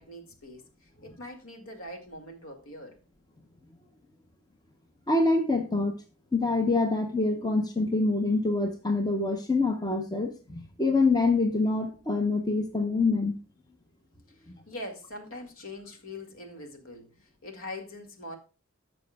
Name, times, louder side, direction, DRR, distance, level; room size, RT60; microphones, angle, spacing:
voice 1, 0.0-2.9 14.3-18.4, left 1 dB, 70° left, 2.1 m, -43 dB
voice 2, 5.1-5.9 6.3-13.3, left 3 dB, 20° left, 0.7 m, -25 dB
14.0 x 6.2 x 2.3 m
head